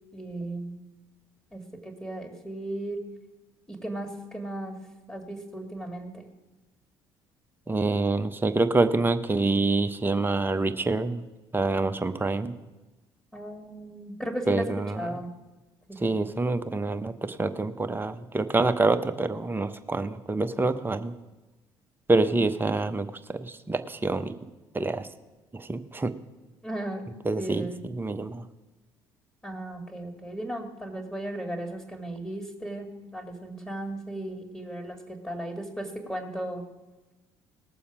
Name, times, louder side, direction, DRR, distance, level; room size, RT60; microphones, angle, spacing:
voice 1, 0.1-0.8 1.5-3.0 3.7-4.8 5.1-6.3 13.3-14.7 14.9-15.3 15.9-16.1 26.6-27.0 27.4-27.8 29.4-36.6, right 1 dB, 10° left, 3 dB, 2.4 m, -36 dB
voice 2, 7.7-11.2 11.5-12.5 14.5-15.2 16.0-21.2 22.1-24.4 24.7-25.1 25.5-26.1 27.2-28.5, right 3 dB, 15° right, 9 dB, 0.9 m, -26 dB
19.0 x 7.0 x 5.0 m, 1.1 s
figure-of-eight pair, 55°, 13 cm